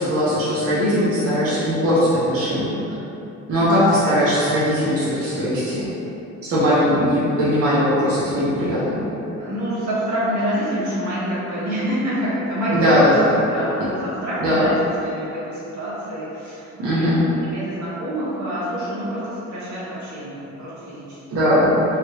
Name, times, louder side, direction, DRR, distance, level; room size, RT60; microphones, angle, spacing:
voice 1, 0.0-2.8 3.5-5.9 6.5-9.1 12.7-13.3 14.4-14.7 16.8-17.2 21.3-21.8, equal, 50° right, -10 dB, 1.0 m, -19 dB
voice 2, 3.5-3.9 9.4-17.1 17.4-21.2, equal, 70° right, -9 dB, 1.2 m, -27 dB
3.2 x 3.0 x 2.9 m, 2.9 s
cardioid pair, 90°, 30 cm